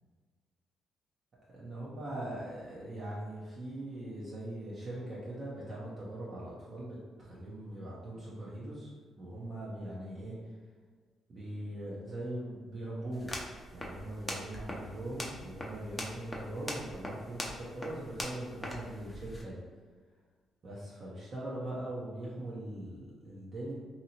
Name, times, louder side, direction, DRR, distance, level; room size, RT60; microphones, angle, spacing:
voice 1, 1.5-8.9 9.2-10.4 11.3-13.4 13.7-19.6 20.6-23.7, right 1 dB, 45° right, -7 dB, 0.7 m, -41 dB
sound 1, 13.1-19.4, left 1 dB, 15° left, 0.6 m, -42 dB
2.8 x 2.6 x 2.8 m, 1.5 s
cardioid pair, 90°, 0 cm